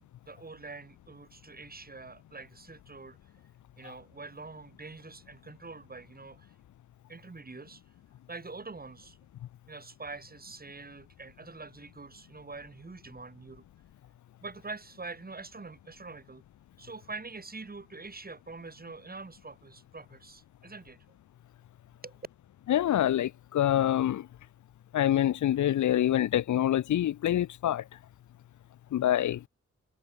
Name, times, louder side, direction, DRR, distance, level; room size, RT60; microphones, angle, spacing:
voice 1, 0.3-3.2 3.8-6.5 7.1-7.8 8.3-9.2 9.7-13.6 14.4-16.4 16.8-21.0 22.0-22.3, right 3 dB, 30° right, 7.5 m, -45 dB
voice 2, 22.7-24.3 24.9-27.8 28.9-29.5, left 12 dB, 80° left, 0.5 m, -26 dB
wide cardioid pair, 130°, 29 cm